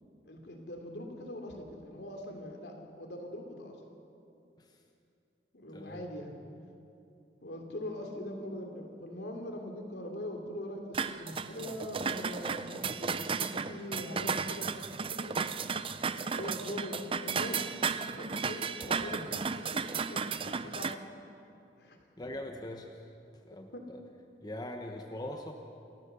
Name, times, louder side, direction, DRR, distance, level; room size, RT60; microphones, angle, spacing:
voice 1, 0.2-3.8 5.5-6.3 7.4-15.6 16.3-17.7 18.2-19.8 20.1-20.9 21.8-22.0 22.2-22.3 23.7-23.8, left 1 dB, 75° left, 3 dB, 3.0 m, -42 dB
voice 2, 5.7-6.1 18.6-18.7 19.2-19.3 22.2-22.9 23.4-24.0 24.4-25.5, left 1 dB, 25° left, 3 dB, 1.1 m, -42 dB
sound 1, 10.9-20.9, right 5 dB, 30° right, 0.5 m, -34 dB
28.5 x 13.5 x 6.9 m, 2.6 s
head